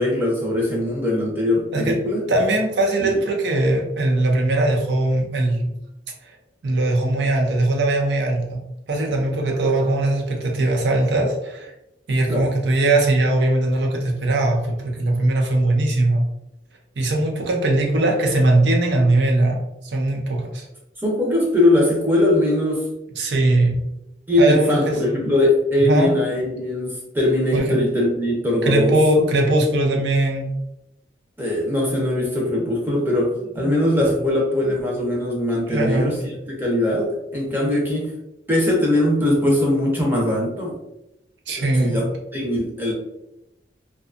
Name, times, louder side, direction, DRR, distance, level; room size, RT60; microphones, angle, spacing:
voice 1, 0.0-2.2 3.0-3.2 12.3-12.5 21.0-22.9 24.3-28.9 31.4-36.2 36.5-38.1 38.5-40.7 41.6-42.1 42.3-42.9, left 1 dB, 10° right, -3 dB, 0.6 m, -21 dB
voice 2, 2.3-5.8 6.6-8.6 8.9-11.7 12.1-16.2 17.0-19.6 19.8-20.7 23.2-23.8 24.4-25.0 25.9-26.1 27.5-27.8 28.6-30.5 33.6-33.7 35.5-36.1 41.5-42.0, right 2 dB, 70° right, 1 dB, 0.5 m, -20 dB
2.6 x 2.3 x 2.4 m, 0.89 s
head